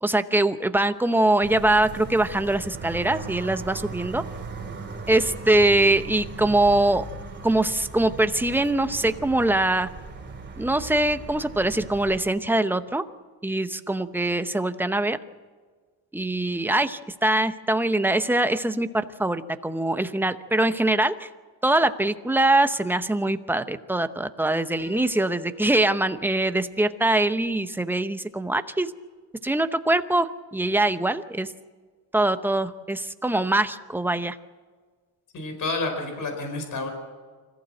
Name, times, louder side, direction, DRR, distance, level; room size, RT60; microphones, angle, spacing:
voice 1, 0.0-4.2 5.1-7.0 7.4-9.9 10.6-13.0 13.4-15.2 16.1-21.3 21.6-28.9 29.4-31.5 32.1-34.4, right 1 dB, 5° right, 10 dB, 0.7 m, -23 dB
sound 1, 1.4-12.2, right 4 dB, 25° right, 3.1 m, -38 dB
Piano, 24.8-28.5, left 4 dB, 70° left, 5.3 m, -49 dB
voice 2, 35.3-36.9, left 3 dB, 45° left, 5 dB, 4.5 m, -29 dB
25.5 x 15.0 x 7.7 m, 1.5 s
cardioid pair, 130°, 44 cm